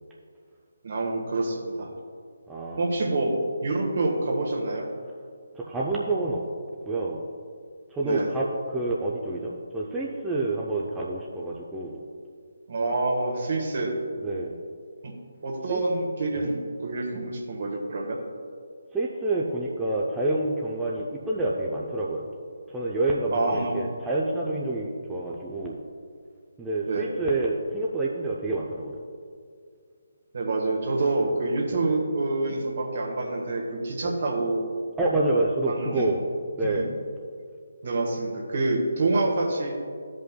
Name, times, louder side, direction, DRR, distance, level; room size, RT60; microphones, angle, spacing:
voice 1, 0.8-1.9 2.8-3.3 3.6-4.8 8.0-8.3 12.7-13.9 15.0-15.1 15.4-18.2 23.3-23.9 26.9-27.1 30.3-34.7 35.7-36.1 36.6-36.9 37.8-39.7, right 2 dB, 55° right, 0 dB, 1.5 m, -27 dB
voice 2, 2.5-2.9 5.6-6.4 6.9-7.2 7.9-12.0 14.2-14.5 15.7-15.8 16.4-16.5 18.9-22.3 22.7-25.8 26.6-29.0 31.7-31.8 34.0-34.1 35.0-36.2 36.6-36.9, right 2 dB, 10° right, -5 dB, 0.5 m, -28 dB
14.0 x 5.3 x 2.2 m, 2.1 s
figure-of-eight pair, 150°, 0 cm